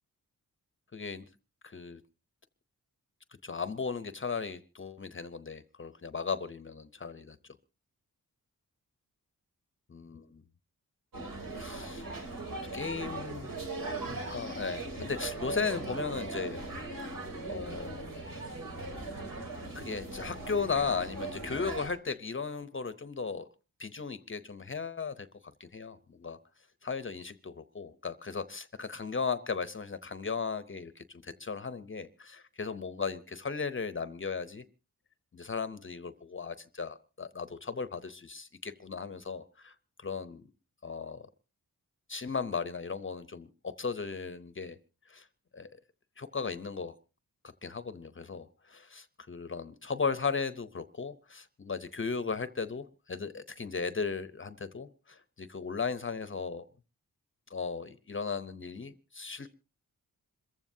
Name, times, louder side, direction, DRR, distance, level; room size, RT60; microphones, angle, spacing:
voice 1, 0.9-1.3 1.6-2.0 3.4-7.5 9.9-10.4 11.5-12.0 12.7-13.6 13.9-16.6 17.5-18.0 19.7-23.5 23.8-25.3 25.6-26.4 26.8-34.6 35.3-40.4 40.8-41.3 42.1-44.8 45.1-45.3 45.5-45.7 46.2-46.9 47.6-56.6 57.5-59.5, left 5 dB, 35° left, 13 dB, 0.7 m, -36 dB
sound 1, 11.1-21.9, right 2 dB, 70° right, 3.2 m, -39 dB
27.0 x 15.0 x 2.7 m, 0.33 s
wide cardioid pair, 110°, 34 cm